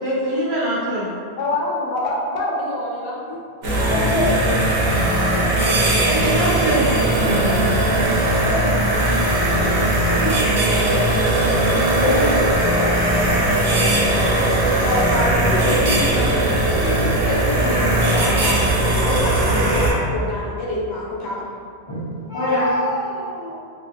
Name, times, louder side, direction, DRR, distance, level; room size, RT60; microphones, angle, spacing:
voice 1, 0.0-1.1 6.0-7.8, right 1 dB, 40° right, -11 dB, 1.1 m, -23 dB
voice 2, 1.4-3.2 3.6-6.0 8.9-9.0 14.8-16.5 16.8-18.6 18.9-21.4 22.5-22.7, left 1 dB, 70° left, -4 dB, 0.8 m, -27 dB
sound 1, 3.6-19.9, right 1 dB, 65° right, 0.8 m, -19 dB
voice 3, 3.9-4.5 7.2-7.3 8.3-8.7 9.5-10.6 11.7-12.9 13.4-13.5 21.9-23.6, left 1 dB, 35° left, -10 dB, 0.5 m, -26 dB
2.8 x 2.2 x 2.4 m, 2.2 s
omnidirectional pair, 1.2 m